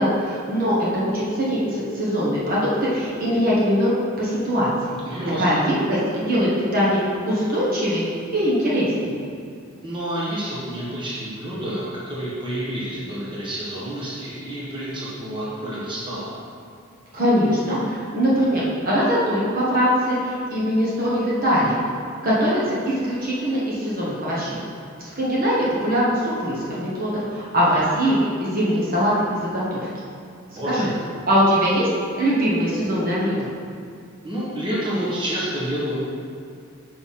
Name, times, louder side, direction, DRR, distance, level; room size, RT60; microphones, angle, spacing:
voice 1, 0.0-5.0 5.4-8.0 8.3-9.2 17.1-21.8 22.2-24.6 25.0-29.9 30.7-30.9 31.3-31.9 32.2-33.5, equal, 45° right, -7 dB, 1.3 m, -22 dB
voice 2, 5.0-5.6 9.8-16.3 30.5-30.9 34.2-36.0, right 1 dB, 25° right, -8 dB, 1.4 m, -29 dB
5.9 x 5.7 x 4.3 m, 2.4 s
head